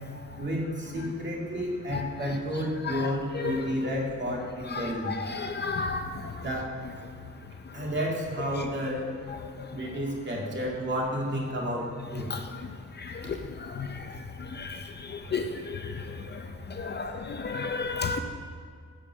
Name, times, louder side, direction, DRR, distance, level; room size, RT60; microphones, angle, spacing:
voice 1, 0.3-5.1 6.4-6.8 7.7-9.2 9.7-12.3 13.6-13.8, equal, 40° right, -2 dB, 2.2 m, -31 dB
voice 2, 5.1-6.0 12.3-12.4 13.8-13.9 14.6-14.7 15.3-15.4 16.8-17.1 17.4-18.2, left 4 dB, 35° left, 6 dB, 0.5 m, -31 dB
11.5 x 5.1 x 7.5 m, 2.1 s
wide cardioid pair, 165°, 30 cm